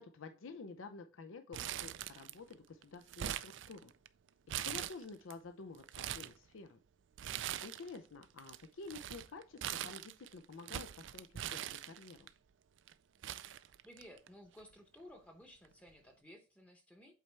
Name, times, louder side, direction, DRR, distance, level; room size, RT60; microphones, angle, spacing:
voice 1, 0.0-3.9 4.6-6.8 7.2-12.3, left 4 dB, 80° left, 8 dB, 0.5 m, -50 dB
Crumpling crinkling, 1.5-2.5 2.8-4.1 4.5-5.3 5.7-6.4 7.2-8.0 8.2-12.3 12.9-13.0 13.2-14.3 14.6-14.7 15.6-15.9, right 11 dB, 65° right, 0.4 m, -42 dB
voice 2, 13.8-17.1, left 1 dB, 5° left, 4 dB, 0.8 m, -56 dB
8.2 x 4.3 x 3.3 m, 0.35 s
head